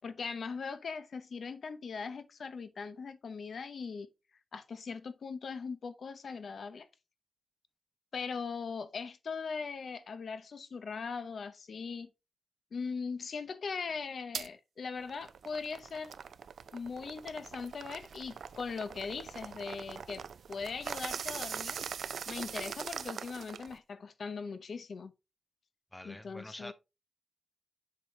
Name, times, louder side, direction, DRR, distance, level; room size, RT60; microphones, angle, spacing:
voice 1, 0.0-4.1 4.5-6.9 8.1-12.1 12.7-16.1 16.7-21.8 22.3-25.1 26.0-26.7, left 5 dB, 60° left, 0.7 m, -40 dB
sound 1, 14.3-14.5 15.0-23.8, right 7 dB, 75° right, 0.4 m, -42 dB
voice 2, 25.9-26.7, left 1 dB, 10° left, 0.5 m, -46 dB
7.4 x 5.0 x 3.1 m
wide cardioid pair, 170°, 0 cm